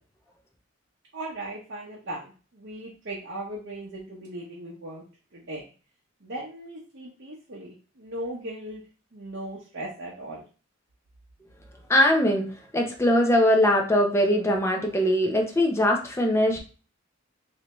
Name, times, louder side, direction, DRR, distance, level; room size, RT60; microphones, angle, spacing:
voice 1, 1.1-5.0 5.3-5.7 6.2-8.8 9.1-10.4, right 1 dB, 55° right, -4 dB, 0.8 m, -38 dB
voice 2, 11.9-16.6, equal, 15° left, 1 dB, 0.5 m, -21 dB
3.2 x 2.7 x 2.9 m, 0.36 s
head